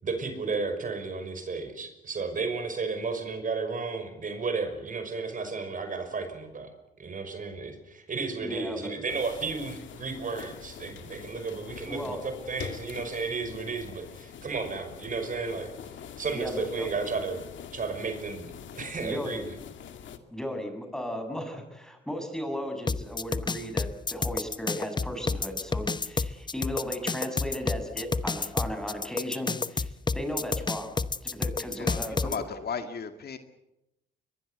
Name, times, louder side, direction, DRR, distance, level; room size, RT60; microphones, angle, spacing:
voice 1, 0.0-6.7 7.0-15.7 16.2-17.4 17.7-19.6, right 4 dB, 40° right, 8 dB, 5.6 m, -33 dB
voice 2, 8.4-8.9 11.9-12.2 16.3-16.9 19.0-19.4 20.3-32.3, equal, 5° left, 5 dB, 7.1 m, -36 dB
sound 1, 9.1-20.2, left 8 dB, 70° left, 2.3 m, -44 dB
sound 2, 22.9-32.4, left 4 dB, 20° left, 0.9 m, -29 dB
voice 3, 31.8-33.4, left 6 dB, 55° left, 8 dB, 2.2 m, -35 dB
22.5 x 22.0 x 8.1 m, 0.88 s
cardioid pair, 90°, 20 cm